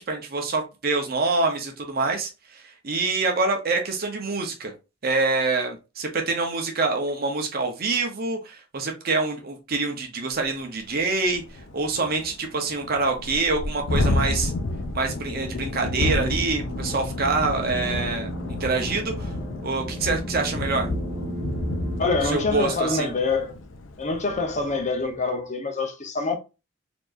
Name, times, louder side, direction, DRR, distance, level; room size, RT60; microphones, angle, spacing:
voice 1, 0.0-4.7 5.0-11.4 11.7-14.5 14.9-18.3 18.6-19.3 19.6-20.9 22.2-23.1, right 3 dB, 50° right, 0.8 m, -26 dB
Thunderstorm, 10.4-10.5 10.9-11.0 11.3-24.9, left 2 dB, 75° left, 0.6 m, -31 dB
sound 1, 14.8-22.1, equal, 15° left, 1.1 m, -35 dB
voice 2, 22.0-23.5 24.0-26.4, left 3 dB, 40° left, 0.8 m, -25 dB
4.4 x 2.9 x 2.5 m
head